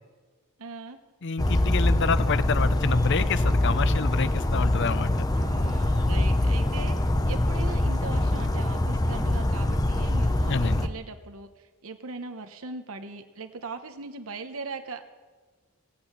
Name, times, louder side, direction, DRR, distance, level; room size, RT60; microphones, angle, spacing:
voice 1, 0.6-1.0 1.4-2.0 5.3-7.0 7.2-15.1, right 3 dB, 70° right, 6 dB, 1.0 m, -39 dB
voice 2, 1.2-5.3 10.5-10.8, left 4 dB, 55° left, 14 dB, 0.7 m, -28 dB
Bird vocalization bird call bird song, 1.4-10.9, left 1 dB, 15° left, 0.6 m, -24 dB
16.5 x 8.6 x 8.7 m, 1.4 s
head